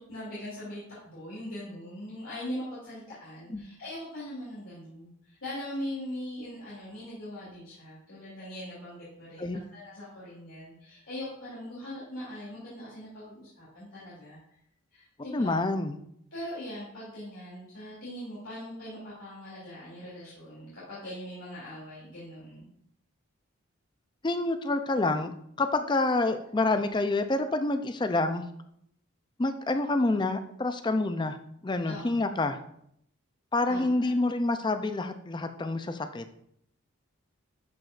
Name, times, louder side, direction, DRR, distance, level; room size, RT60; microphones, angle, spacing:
voice 1, 0.1-14.4 14.9-15.6 16.3-22.7 26.6-26.8 31.9-32.0 33.7-34.2, left 1 dB, 70° left, -9 dB, 2.7 m, -41 dB
voice 2, 15.3-16.0 24.2-25.3 25.6-28.4 29.4-31.4 31.6-32.6 33.5-36.2, left 2 dB, 20° left, 8 dB, 0.4 m, -27 dB
11.5 x 5.1 x 2.5 m, 0.71 s
head